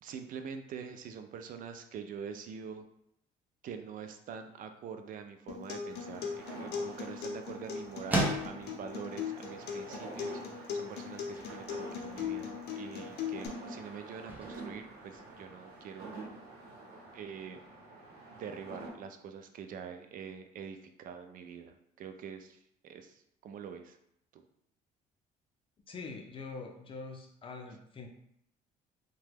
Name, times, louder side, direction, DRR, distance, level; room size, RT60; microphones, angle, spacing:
voice 1, 0.0-2.8 3.6-16.1 17.1-17.6 18.4-24.0 24.3-24.4, right 7 dB, 55° right, 7 dB, 0.4 m, -45 dB
Acoustic guitar, 5.5-13.5, left 7 dB, 75° left, 0.6 m, -39 dB
sound 1, 5.9-18.9, right 2 dB, 75° right, 0.9 m, -48 dB
sound 2, 6.1-15.8, right 1 dB, 10° right, 0.6 m, -41 dB
voice 2, 25.9-28.1, left 4 dB, 30° left, 3 dB, 0.5 m, -44 dB
2.8 x 2.2 x 3.3 m, 0.74 s
cardioid pair, 110°, 17 cm